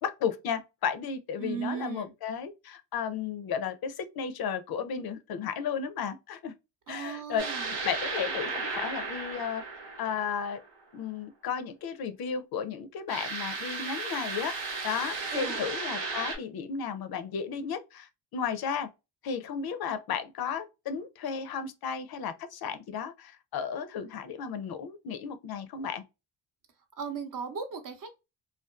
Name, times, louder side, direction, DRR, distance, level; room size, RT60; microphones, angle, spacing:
voice 1, 0.0-6.5 6.9-9.6 10.0-10.6 10.9-14.5 14.8-18.9 19.2-26.0, left 7 dB, 60° left, 0.5 m, -34 dB
voice 2, 1.4-2.1 6.9-7.7 15.3-15.7 27.0-28.1, right 7 dB, 50° right, 0.7 m, -36 dB
sound 1, 7.4-10.8 13.1-16.4, right 4 dB, 75° right, 1.0 m, -35 dB
2.5 x 2.3 x 2.2 m
cardioid pair, 105°, 43 cm